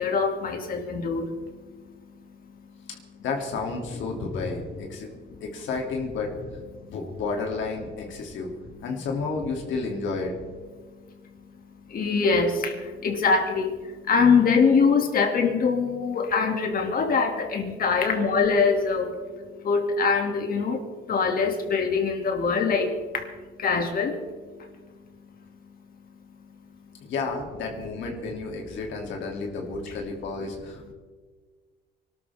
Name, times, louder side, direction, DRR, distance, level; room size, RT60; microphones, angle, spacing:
voice 1, 0.0-2.9 5.0-5.4 6.7-6.9 10.8-24.7 25.1-25.2 25.6-25.8 26.8-27.1, left 5 dB, 45° left, 3 dB, 2.7 m, -25 dB
voice 2, 2.9-5.1 5.4-6.3 6.8-8.5 8.8-10.3 27.0-30.9, left 4 dB, 75° left, 1 dB, 3.0 m, -31 dB
25.5 x 13.0 x 3.7 m, 1.4 s
cardioid pair, 130°, 20 cm